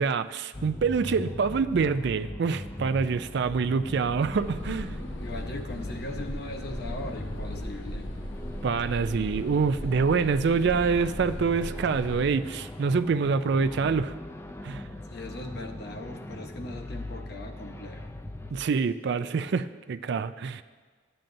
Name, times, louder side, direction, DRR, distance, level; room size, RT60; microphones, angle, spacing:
voice 1, 0.0-5.0 8.6-14.1 14.6-14.8 18.5-20.6, right 5 dB, 60° right, 11 dB, 0.4 m, -26 dB
sound 1, 0.5-18.5, left 1 dB, 15° left, 0.4 m, -39 dB
sound 2, 4.3-12.3, equal, 85° left, 1.0 m, -39 dB
voice 2, 5.2-8.1 15.1-18.1, left 2 dB, 55° left, 3 dB, 0.9 m, -39 dB
14.0 x 8.9 x 2.6 m, 1.5 s
head